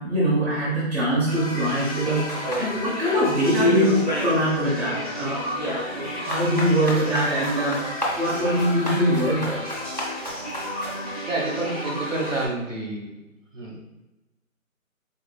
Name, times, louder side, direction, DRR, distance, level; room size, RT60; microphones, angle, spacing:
voice 1, 0.0-9.6, equal, 50° right, -7 dB, 1.1 m, -23 dB
sound 1, 1.3-12.5, equal, 25° right, 0.8 m, -33 dB
sound 2, 2.3-3.2 3.6-4.4 4.7-11.0, left 1 dB, 35° left, 0.5 m, -29 dB
voice 2, 11.3-13.1 13.5-13.8, right 2 dB, 65° right, -3 dB, 1.3 m, -28 dB
4.0 x 2.8 x 2.3 m, 1.0 s
hypercardioid pair, 175°, 41 cm